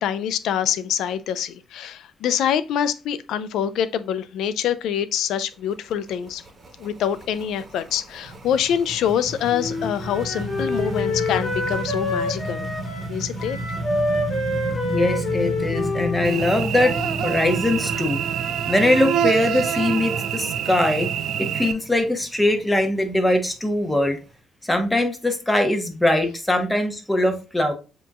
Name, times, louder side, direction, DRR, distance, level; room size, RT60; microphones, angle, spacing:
voice 1, 0.0-6.4 6.8-12.7 13.1-13.6, left 9 dB, 80° left, 0.4 m, -25 dB
sound 1, 5.5-24.3, right 2 dB, 35° right, 1.3 m, -33 dB
Wind instrument woodwind instrument, 9.5-17.2, left 2 dB, 45° left, 2.0 m, -27 dB
voice 2, 14.9-16.9 17.2-18.2 18.7-21.1 21.4-24.2 24.6-27.7, left 1 dB, 10° left, 1.2 m, -21 dB
Cricket / Buzz, 16.2-21.7, right 9 dB, 80° right, 0.3 m, -26 dB
7.5 x 2.8 x 2.3 m
cardioid pair, 90°, 0 cm